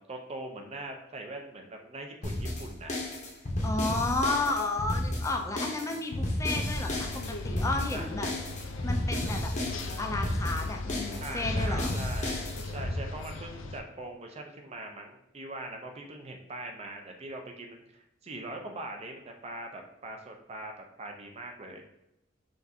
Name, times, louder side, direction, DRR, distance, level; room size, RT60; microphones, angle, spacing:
voice 1, 0.0-2.9 7.9-8.1 11.2-21.8, right 2 dB, 35° right, 3 dB, 0.5 m, -42 dB
sound 1, 2.2-12.9, left 1 dB, 40° left, 0.8 m, -32 dB
voice 2, 3.6-8.3 8.8-9.5 10.0-11.9, left 2 dB, 15° left, 3 dB, 0.4 m, -32 dB
sound 2, 6.7-13.8, left 3 dB, 85° left, 0.4 m, -39 dB
5.1 x 2.6 x 2.7 m, 0.84 s
head